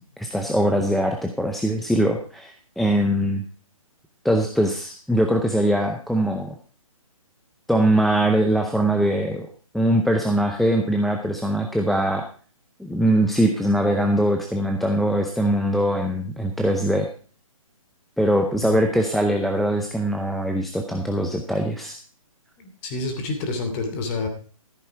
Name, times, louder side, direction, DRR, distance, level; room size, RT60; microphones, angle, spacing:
voice 1, 0.2-3.4 4.2-6.6 7.7-9.5 9.7-12.3 12.8-17.1 18.2-22.0, right 1 dB, ahead, 2 dB, 0.6 m, -22 dB
voice 2, 22.6-24.3, left 3 dB, 25° left, 6 dB, 2.8 m, -28 dB
14.0 x 8.4 x 4.7 m, 0.40 s
hypercardioid pair, 155°, 18 cm